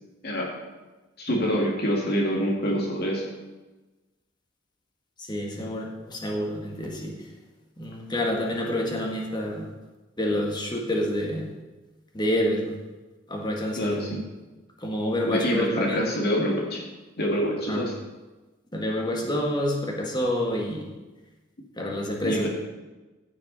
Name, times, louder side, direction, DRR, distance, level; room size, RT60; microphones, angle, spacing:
voice 1, 1.2-3.2 13.8-14.2 15.2-16.8 17.2-17.9 22.2-22.5, equal, 55° left, -2 dB, 2.3 m, -26 dB
voice 2, 5.2-7.2 7.8-9.7 10.2-11.5 12.1-12.8 13.3-14.1 14.8-16.0 17.7-17.8 18.7-20.9 21.8-22.5, left 1 dB, 25° left, 0 dB, 1.7 m, -28 dB
15.0 x 6.6 x 4.1 m, 1.2 s
head